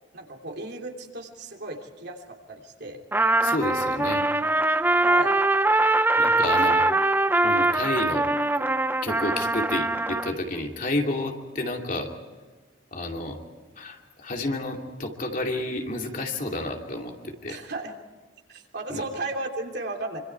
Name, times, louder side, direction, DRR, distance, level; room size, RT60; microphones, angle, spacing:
voice 1, 0.1-3.0 5.0-5.4 6.3-6.7 17.5-17.9 18.5-20.2, right 2 dB, 60° right, 2 dB, 3.1 m, -35 dB
Trumpet, 3.1-10.3, right 2 dB, 10° right, 0.7 m, -22 dB
voice 2, 3.4-4.3 6.2-6.8 7.4-8.5 9.0-12.1 12.9-13.4 13.7-17.6 18.9-19.0, left 2 dB, 45° left, 2 dB, 2.6 m, -30 dB
26.0 x 26.0 x 4.7 m, 1.4 s
head